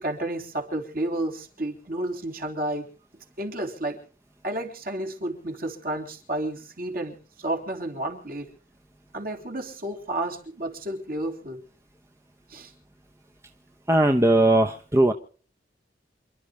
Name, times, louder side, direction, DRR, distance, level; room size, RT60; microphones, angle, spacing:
voice 1, 0.0-2.9 3.4-4.0 4.4-8.5 9.1-11.6 12.5-12.7, right 1 dB, 50° right, 2 dB, 3.6 m, -31 dB
voice 2, 13.9-15.1, right 1 dB, 15° right, 4 dB, 0.9 m, -19 dB
28.0 x 11.5 x 3.2 m, 0.41 s
head